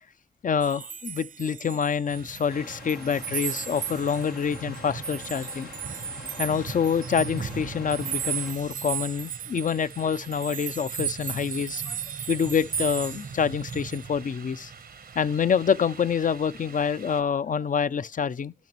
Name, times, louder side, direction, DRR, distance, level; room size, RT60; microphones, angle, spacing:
voice 1, 0.4-5.7 6.4-12.0 12.3-14.7 15.2-18.5, left 7 dB, 55° left, 0.5 m, -26 dB
sound 1, 0.6-2.4 2.7-14.0, right 8 dB, 60° right, 0.5 m, -35 dB
sound 2, 2.1-17.2, right 5 dB, 85° right, 1.0 m, -42 dB
sound 3, 2.5-8.5, left 4 dB, 90° left, 1.1 m, -45 dB
16.0 x 5.9 x 3.0 m
cardioid pair, 50°, 16 cm